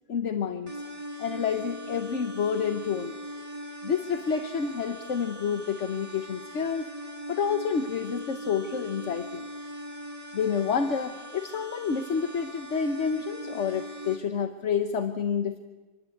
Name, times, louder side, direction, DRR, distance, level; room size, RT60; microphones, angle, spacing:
voice 1, 0.1-0.7 1.2-3.1 3.8-6.9 7.3-9.4 10.3-15.6, left 6 dB, 45° left, 8 dB, 1.2 m, -29 dB
sound 1, 0.7-14.2, equal, 20° right, 2.1 m, -41 dB
26.0 x 22.0 x 8.5 m, 1.2 s
omnidirectional pair, 2.1 m